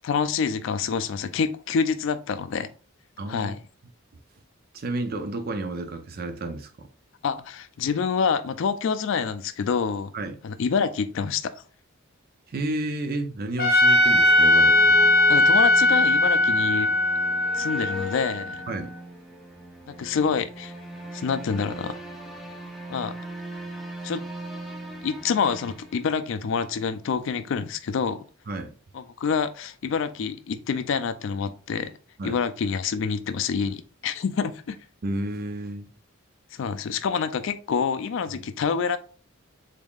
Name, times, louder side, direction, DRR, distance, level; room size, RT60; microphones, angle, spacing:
voice 1, 0.0-2.7 3.3-3.6 7.2-10.1 10.4-11.5 15.3-16.9 17.5-18.6 19.9-20.7 21.1-22.0 22.9-23.1 24.0-24.2 25.0-28.3 28.9-32.0 32.2-34.8 36.5-39.0, left 6 dB, 60° left, 0.3 m, -27 dB
voice 2, 3.2-3.5 4.7-6.9 10.1-10.4 12.5-15.0 18.7-18.9 28.5-28.7 32.2-32.4 35.0-35.9, right 2 dB, 45° right, 0.5 m, -31 dB
Trumpet, 13.6-18.8, left 1 dB, 45° left, 0.9 m, -19 dB
sound 1, 13.8-26.6, equal, ahead, 0.6 m, -39 dB
3.5 x 3.5 x 2.3 m
head